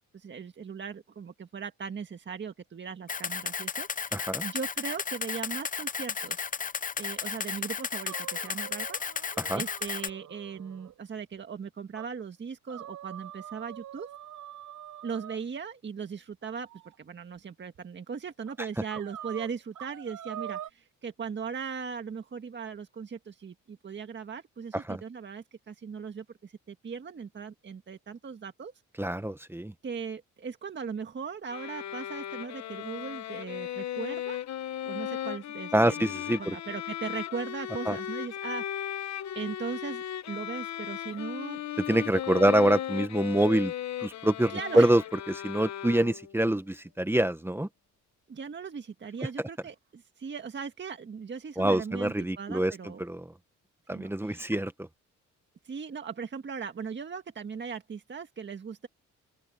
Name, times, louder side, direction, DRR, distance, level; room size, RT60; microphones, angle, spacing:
voice 1, 0.1-6.4 7.0-9.0 9.5-14.1 15.0-16.7 17.0-28.7 29.8-34.4 34.9-36.0 36.4-38.9 39.3-41.6 44.5-44.9 48.3-53.0 53.9-54.4 55.6-58.9, right 6 dB, 40° right, 1.7 m, -38 dB
Camera, 3.1-10.1, left 6 dB, 25° left, 0.7 m, -33 dB
voice 2, 4.1-4.4 9.4-9.6 18.6-18.7 24.7-25.0 29.0-29.7 35.7-36.6 37.9-38.0 41.9-43.7 44.0-45.0 45.3-47.7 51.6-53.3 53.9-54.7, right 1 dB, 10° right, 1.3 m, -26 dB
sound 1, 8.0-10.9 11.3-11.4 12.0-12.1 12.7-15.4 16.4-17.0 17.8-17.9 18.5-18.6 18.9-20.7, right 11 dB, 75° right, 6.9 m, -44 dB
sound 2, 31.5-46.4, left 11 dB, 65° left, 1.3 m, -36 dB
open air
cardioid pair, 90°, 30 cm